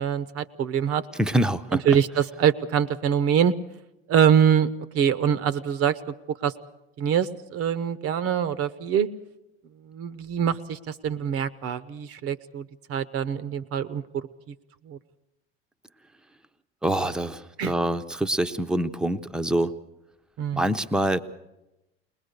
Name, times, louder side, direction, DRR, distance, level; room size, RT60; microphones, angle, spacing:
voice 1, 0.0-1.0 1.9-3.5 4.1-4.7 4.9-6.5 7.0-9.1 9.8-14.5 14.9-15.0 17.6-17.7 20.4-20.6, right 8 dB, 45° right, 15 dB, 0.9 m, -24 dB
voice 2, 1.1-1.8 16.8-19.7 20.5-21.2, right 1 dB, ahead, 9 dB, 0.8 m, -25 dB
21.0 x 20.5 x 6.7 m, 0.95 s
hypercardioid pair, 75°, 32 cm